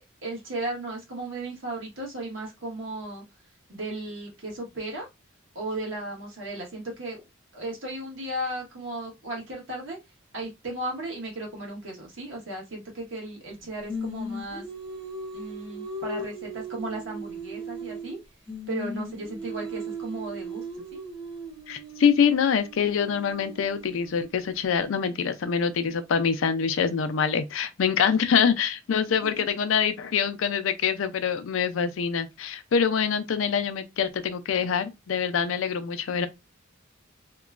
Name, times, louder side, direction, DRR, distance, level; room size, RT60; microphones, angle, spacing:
voice 1, 0.2-3.2 3.7-5.1 5.5-7.2 7.5-10.0 10.3-14.6 15.3-18.2 18.7-21.0 29.1-29.4, right 1 dB, 70° right, 1.2 m, -35 dB
Singing, 13.9-18.2 18.5-24.5, right 1 dB, 20° right, 0.8 m, -38 dB
voice 2, 21.7-36.3, left 7 dB, 75° left, 0.4 m, -25 dB
2.9 x 2.2 x 2.3 m
head